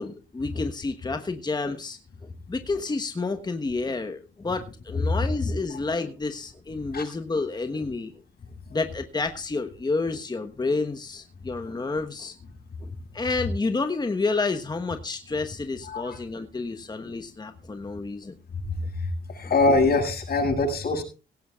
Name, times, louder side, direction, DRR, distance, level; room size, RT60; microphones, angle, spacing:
voice 1, 0.0-2.0 2.5-8.1 8.7-12.3 13.1-18.3, left 3 dB, 20° left, 8 dB, 1.2 m, -29 dB
voice 2, 15.9-16.2 19.4-21.0, left 2 dB, 50° left, 1 dB, 7.0 m, -23 dB
17.5 x 16.5 x 2.4 m, 0.34 s
cardioid pair, 90°, 20 cm